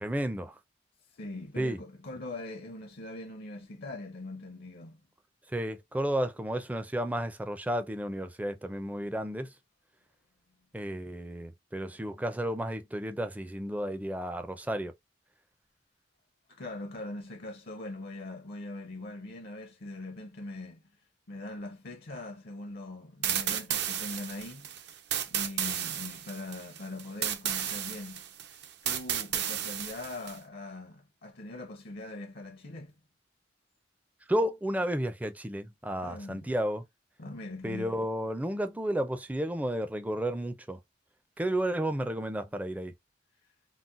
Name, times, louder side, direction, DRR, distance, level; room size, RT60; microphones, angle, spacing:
voice 1, 0.0-0.5 1.6-1.8 5.5-9.5 10.7-14.9 34.3-36.8 37.6-40.8 41.4-42.9, right 1 dB, 10° right, 0.4 m, -32 dB
voice 2, 1.1-5.0 16.5-20.8 21.3-24.9 25.3-28.2 28.8-32.9 36.0-36.5 37.2-38.0, left 2 dB, 55° left, 0.6 m, -42 dB
sound 1, 23.2-30.4, right 10 dB, 60° right, 0.5 m, -33 dB
3.9 x 2.1 x 2.4 m
head